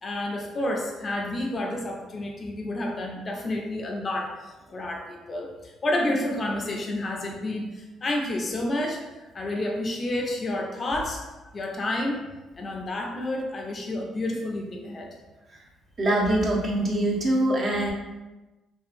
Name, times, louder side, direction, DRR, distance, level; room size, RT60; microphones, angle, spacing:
voice 1, 0.0-12.2 12.6-15.1, left 1 dB, 40° left, 0 dB, 0.5 m, -30 dB
voice 2, 16.0-17.9, right 1 dB, 45° right, -2 dB, 0.7 m, -23 dB
2.7 x 2.3 x 2.5 m, 1.1 s
supercardioid pair, 70°, 0 cm